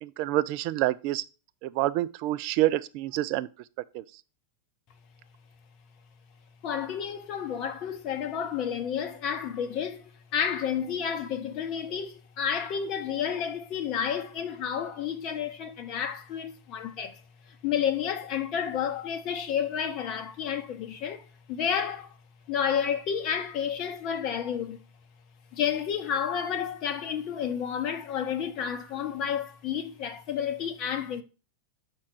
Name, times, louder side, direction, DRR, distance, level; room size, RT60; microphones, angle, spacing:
voice 1, 0.0-1.2 1.6-3.5 3.9-4.0, right 15 dB, 45° right, 0.4 m, -27 dB
voice 2, 6.6-17.2 17.6-22.1 22.5-24.8 25.5-31.2, left 8 dB, 40° left, 0.8 m, -31 dB
5.7 x 4.5 x 4.8 m
figure-of-eight pair, 90°, 0 cm